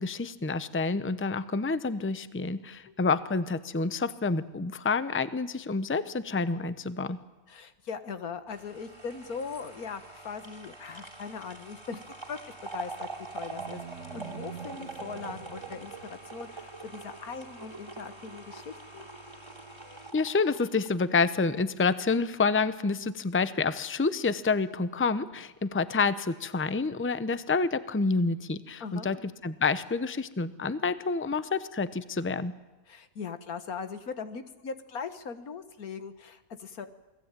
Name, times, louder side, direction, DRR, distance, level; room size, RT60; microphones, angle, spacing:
voice 1, 0.0-7.2 20.1-29.2 29.4-32.5, left 4 dB, 10° left, 13 dB, 0.7 m, -28 dB
voice 2, 7.5-12.0 12.3-19.1 28.8-29.2 32.9-36.9, left 5 dB, 90° left, 10 dB, 1.9 m, -40 dB
sound 1, 8.5-21.7 22.1-22.2, right 3 dB, 20° right, 2.8 m, -44 dB
sound 2, 13.4-16.4, right 8 dB, 80° right, 1.7 m, -45 dB
28.5 x 19.5 x 9.1 m, 1.0 s
omnidirectional pair, 1.5 m